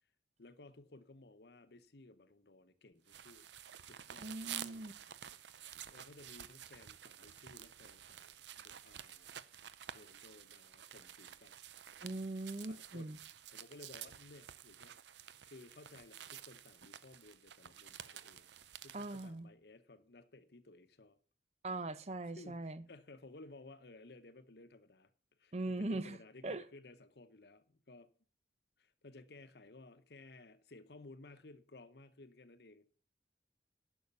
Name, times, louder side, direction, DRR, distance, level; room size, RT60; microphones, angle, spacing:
voice 1, 0.4-3.5 3.8-4.8 5.8-9.4 9.9-11.5 12.7-13.1 13.5-15.0 15.4-18.5 18.8-21.2 22.4-25.1 25.4-28.1 28.8-32.9, left 2 dB, 65° left, 0.9 m, -57 dB
sound 1, 3.1-19.3, right 10 dB, 85° right, 0.6 m, -51 dB
voice 2, 4.2-4.9 12.0-13.2 18.9-19.5 21.6-22.8 25.5-26.2 26.4-26.6, right 2 dB, 40° right, 0.6 m, -40 dB
11.0 x 6.4 x 6.9 m
head